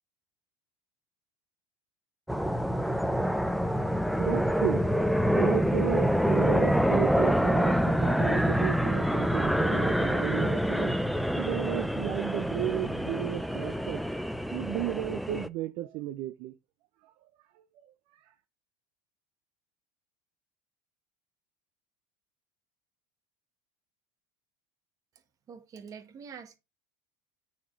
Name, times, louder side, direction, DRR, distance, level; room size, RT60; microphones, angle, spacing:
sound 1, 2.3-15.5, equal, ahead, 0.4 m, -26 dB
voice 1, 4.2-4.8 5.4-10.9 11.4-14.0 14.5-16.5 17.0-17.1 17.5-18.3, right 14 dB, 55° right, 0.7 m, -34 dB
voice 2, 25.5-26.6, right 6 dB, 35° right, 1.8 m, -45 dB
9.0 x 4.3 x 3.9 m
supercardioid pair, 125°, 11 cm